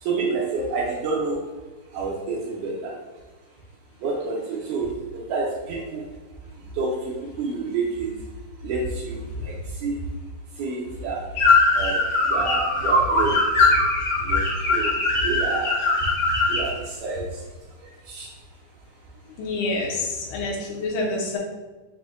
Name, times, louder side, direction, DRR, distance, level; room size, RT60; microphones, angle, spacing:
voice 1, 0.0-1.4 1.9-3.0 4.0-6.0 6.7-8.1 8.6-10.0 10.6-11.2 11.7-12.0 12.3-13.4 14.2-14.4 14.7-15.0 15.2-15.8 16.5-17.3 18.1-18.3, right 3 dB, 80° right, -3 dB, 1.9 m, -28 dB
sound 1, 11.4-16.7, left 3 dB, 60° left, 1.2 m, -20 dB
voice 2, 19.4-21.4, left 2 dB, 80° left, -2 dB, 2.3 m, -27 dB
6.0 x 2.6 x 2.4 m, 1.2 s
omnidirectional pair, 3.8 m